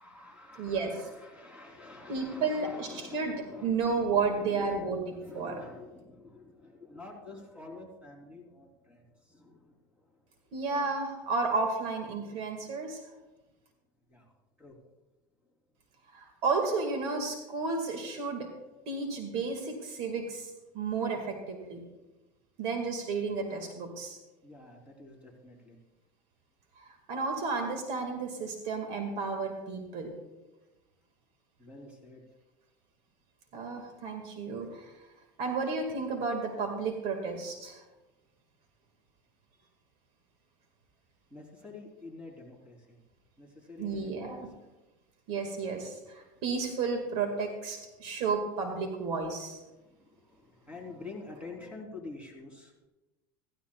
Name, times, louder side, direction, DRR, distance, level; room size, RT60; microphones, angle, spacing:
voice 1, 0.0-10.2 14.1-14.3 14.6-14.7 24.4-25.8 31.6-32.2 39.6-39.7 41.3-43.0 43.4-44.6 49.8-52.7, left 3 dB, 10° right, 1 dB, 3.5 m, -48 dB
voice 2, 0.6-1.1 2.1-5.0 5.3-5.6 10.5-13.0 16.1-18.5 18.9-21.8 22.6-24.2 27.1-30.1 33.5-34.9 35.4-37.8 43.8-44.5 45.3-49.6, right 4 dB, 60° right, 4 dB, 2.0 m, -32 dB
16.0 x 15.0 x 2.4 m, 1.1 s
supercardioid pair, 120°, 11 cm